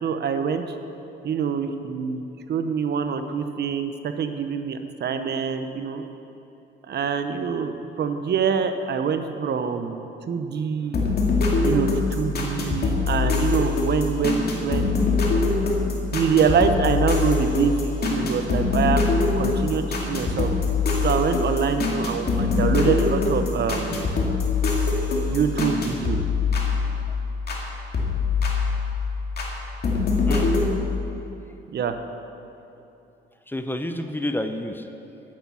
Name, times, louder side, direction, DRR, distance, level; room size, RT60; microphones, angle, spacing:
voice 1, 0.0-0.6 1.2-2.2 2.5-6.0 6.9-11.0 11.6-15.0 16.1-19.0 19.4-20.5 21.0-24.2 25.3-26.2 31.7-32.0, right 6 dB, 55° right, 8 dB, 0.9 m, -25 dB
sound 1, 10.9-27.6 27.9-29.5 29.8-30.7, left 4 dB, 55° left, 2.3 m, -23 dB
voice 2, 33.5-35.2, left 1 dB, 10° left, 7 dB, 0.6 m, -30 dB
10.5 x 8.3 x 7.0 m, 2.9 s
cardioid pair, 90°, 20 cm